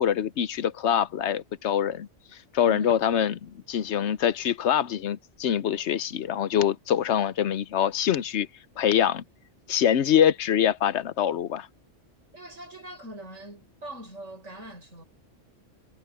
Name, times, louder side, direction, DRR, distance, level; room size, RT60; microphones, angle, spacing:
voice 1, 0.0-2.1 2.5-8.5 8.8-9.2 9.7-11.7, left 9 dB, 70° left, 1.0 m, -24 dB
voice 2, 2.6-3.0 12.3-15.0, right 1 dB, 85° right, 6.8 m, -42 dB
omnidirectional pair, 1.3 m